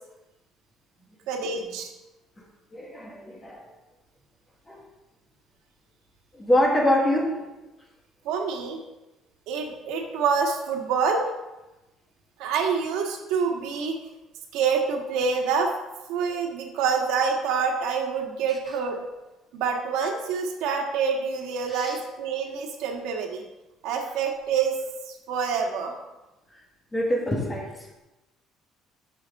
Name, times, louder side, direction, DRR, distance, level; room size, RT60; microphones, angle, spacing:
voice 1, 1.3-1.9 8.2-8.8 9.5-11.3 12.4-14.0 14.5-15.7 16.1-19.0 19.5-23.4 23.8-24.8 25.3-25.9, right 5 dB, 85° right, 2 dB, 1.6 m, -26 dB
voice 2, 2.7-3.7 4.7-4.8 6.3-7.5 21.7-22.0 26.5-26.6 26.9-27.9, left 1 dB, 15° left, 0 dB, 1.4 m, -25 dB
13.5 x 5.9 x 3.6 m, 1.0 s
cardioid pair, 175°, 0 cm